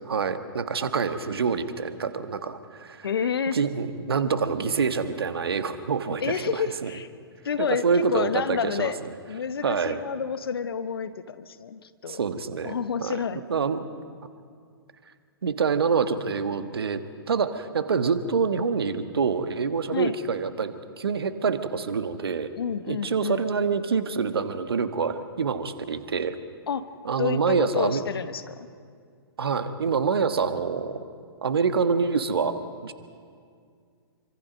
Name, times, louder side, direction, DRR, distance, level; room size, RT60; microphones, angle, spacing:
voice 1, 0.1-3.1 3.5-6.9 7.6-8.9 9.6-10.0 12.1-13.2 13.5-13.9 15.4-17.0 17.3-22.5 22.9-26.4 27.0-28.0 29.4-31.0 31.4-32.9, right 5 dB, 70° right, 10 dB, 1.4 m, -26 dB
voice 2, 3.0-3.6 6.2-7.1 7.4-9.0 9.3-12.2 12.6-13.4 19.9-20.1 22.6-23.4 26.7-26.9 27.2-28.7, left 6 dB, 65° left, 12 dB, 1.1 m, -29 dB
27.0 x 25.0 x 5.4 m, 2.2 s
figure-of-eight pair, 115°, 13 cm